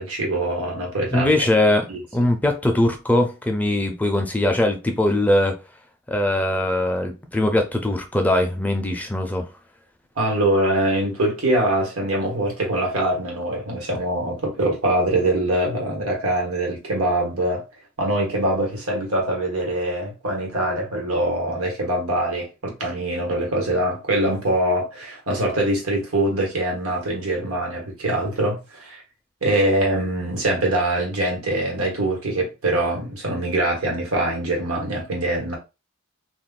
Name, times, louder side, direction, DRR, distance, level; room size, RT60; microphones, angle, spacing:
voice 1, 0.0-1.3 1.9-2.0 10.2-17.6 18.0-29.0 29.4-35.6, right 1 dB, 85° right, 1.2 m, -23 dB
voice 2, 1.1-1.8 2.1-5.6 6.1-9.5, left 1 dB, 5° left, 0.4 m, -21 dB
2.4 x 2.3 x 3.6 m
head